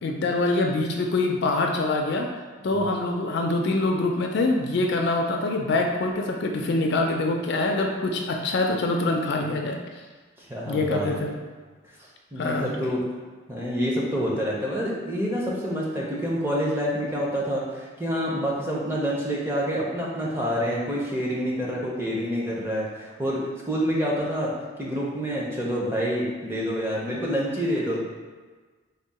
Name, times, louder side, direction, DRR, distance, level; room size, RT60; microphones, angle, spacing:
voice 1, 0.0-2.3 2.6-9.8 10.7-11.3 12.4-12.7, left 2 dB, 55° left, 2 dB, 0.3 m, -24 dB
voice 2, 10.4-11.2 12.3-13.0 13.5-24.5 24.8-28.1, equal, 10° right, -5 dB, 0.5 m, -27 dB
3.5 x 2.1 x 4.0 m, 1.4 s
head